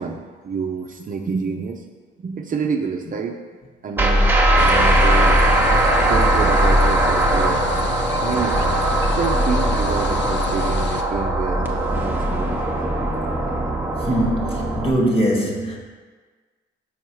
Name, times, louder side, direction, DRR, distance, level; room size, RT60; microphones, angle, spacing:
voice 1, 0.0-1.8 2.2-3.4 3.8-5.4 6.0-12.7, right 5 dB, 40° right, 3 dB, 0.6 m, -28 dB
sound 1, 4.0-14.9, right 1 dB, 10° right, 0.9 m, -19 dB
sound 2, 4.6-11.0, left 6 dB, 65° left, 0.6 m, -30 dB
voice 2, 14.0-15.8, right 1 dB, 30° left, 0 dB, 1.5 m, -21 dB
6.4 x 4.6 x 4.6 m, 1.4 s
cardioid pair, 90°, 20 cm